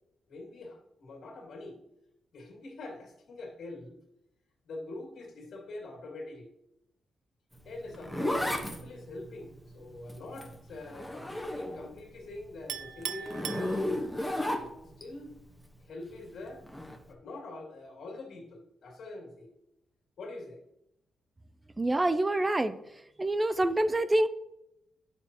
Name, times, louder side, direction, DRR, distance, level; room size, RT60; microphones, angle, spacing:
voice 1, 0.3-1.8 2.3-4.0 4.6-6.5 7.6-14.0 15.0-15.3 15.8-16.6 17.1-19.5 20.2-20.6, left 2 dB, 70° left, 0 dB, 2.4 m, -44 dB
Zipper (clothing), 7.5-12.0 12.4-15.0 16.6-17.0, left 1 dB, 5° left, 1.2 m, -34 dB
Chink clink, 12.7-14.4, right 9 dB, 90° right, 0.4 m, -39 dB
voice 2, 21.8-22.8 23.2-24.3, right 1 dB, 20° right, 12 dB, 0.4 m, -26 dB
9.1 x 6.9 x 2.9 m, 0.83 s
cardioid pair, 95°, 0 cm